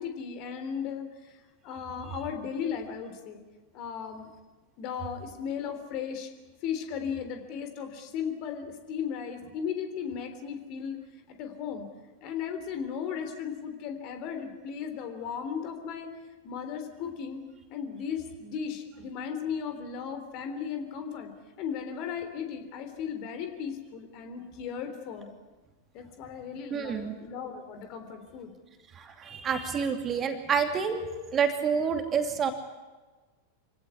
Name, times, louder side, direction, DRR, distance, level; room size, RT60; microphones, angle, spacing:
voice 1, 0.0-1.3 1.6-3.4 3.7-4.3 4.8-6.3 6.6-11.0 11.4-11.9 12.2-16.1 16.4-17.4 17.7-21.3 21.6-25.3 25.9-28.5, left 7 dB, 40° left, 7 dB, 3.5 m, -36 dB
voice 2, 26.7-27.1 28.9-31.0 31.3-32.5, right 6 dB, 25° right, 6 dB, 2.6 m, -28 dB
26.5 x 17.0 x 9.8 m, 1.3 s
figure-of-eight pair, 90°, 0 cm